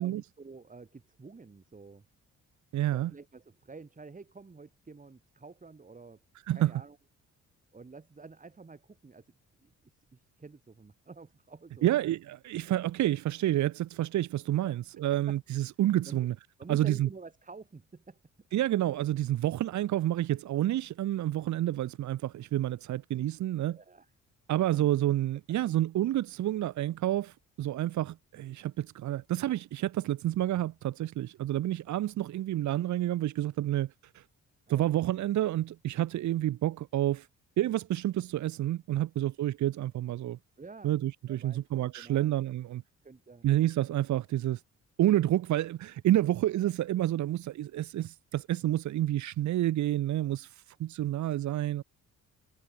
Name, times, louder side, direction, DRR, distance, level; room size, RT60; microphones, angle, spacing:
voice 1, 0.0-2.0 2.9-6.2 6.5-7.0 7.7-9.3 9.6-11.9 14.6-14.7 15.1-15.4 16.1-16.2 16.6-18.2 23.7-24.1 34.7-34.9 40.6-40.9 41.3-41.6 41.9-42.3 43.0-43.5, right 4 dB, 25° right, 4.5 m, -49 dB
voice 2, 2.7-3.1 6.5-6.7 11.8-16.3 16.7-17.1 18.5-23.8 24.5-34.2 34.7-37.3 37.6-40.4 40.8-42.8 43.4-44.6 45.0-51.8, right 13 dB, 70° right, 1.1 m, -29 dB
cardioid pair, 90°, 30 cm